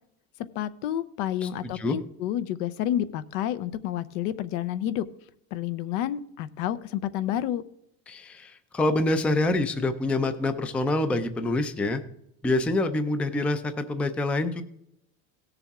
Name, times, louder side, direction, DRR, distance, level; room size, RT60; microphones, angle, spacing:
voice 1, 0.5-5.0 5.5-7.6, left 11 dB, 70° left, 14 dB, 0.8 m, -29 dB
voice 2, 1.4-2.0 8.1-12.0 12.4-14.6, left 2 dB, 5° left, 10 dB, 0.4 m, -26 dB
17.0 x 7.0 x 3.6 m, 0.77 s
supercardioid pair, 140°, 40 cm